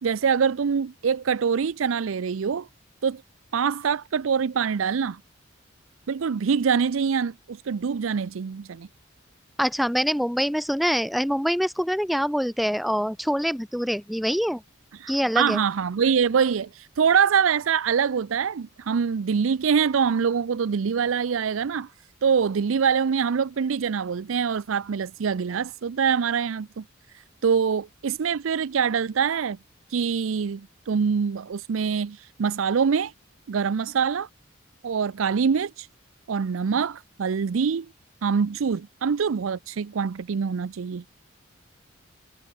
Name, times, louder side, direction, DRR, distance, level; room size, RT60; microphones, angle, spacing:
voice 1, 0.0-2.7 3.0-3.2 3.5-5.2 6.1-8.9 15.0-16.7 17.0-21.9 22.2-26.8 27.4-29.6 29.9-33.1 33.5-34.3 34.8-35.9 36.3-37.9 38.2-41.0, right 6 dB, 80° right, 0.5 m, -24 dB
voice 2, 9.6-14.6 15.1-15.6, equal, ahead, 1.1 m, -25 dB
head